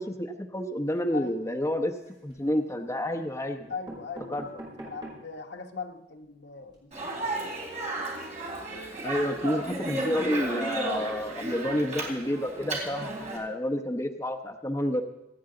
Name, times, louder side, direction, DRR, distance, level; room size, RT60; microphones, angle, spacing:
voice 1, 0.0-1.9 2.2-3.6 4.3-4.5 9.0-15.0, left 1 dB, 15° left, 4 dB, 0.9 m, -29 dB
voice 2, 1.1-1.5 3.7-7.5, left 4 dB, 65° left, 5 dB, 1.1 m, -40 dB
sound 1, 1.8-2.5 3.2-3.3 3.6-5.4 5.9-6.0 6.2-6.3 6.6-6.7, right 1 dB, 25° right, 5.2 m, -45 dB
Speech, 6.9-13.4, right 2 dB, 40° right, 3.6 m, -34 dB
26.5 x 9.4 x 3.9 m, 0.86 s
head